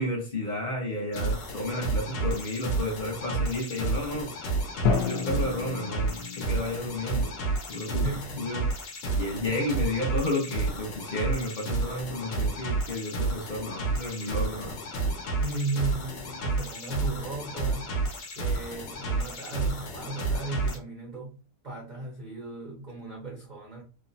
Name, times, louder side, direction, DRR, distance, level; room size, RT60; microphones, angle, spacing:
voice 1, 0.0-4.3 4.9-7.3 7.7-8.6 9.2-14.8, left 1 dB, 55° left, 0.5 m, -32 dB
sound 1, 1.1-20.8, right 3 dB, 90° left, 1.4 m, -31 dB
Drum, 4.8-6.8, left 7 dB, 70° left, 0.9 m, -30 dB
voice 2, 8.0-8.6 9.4-9.6 15.4-18.0 18.4-21.4 21.6-23.8, right 3 dB, 85° right, 0.4 m, -35 dB
3.3 x 2.1 x 2.5 m
omnidirectional pair, 1.8 m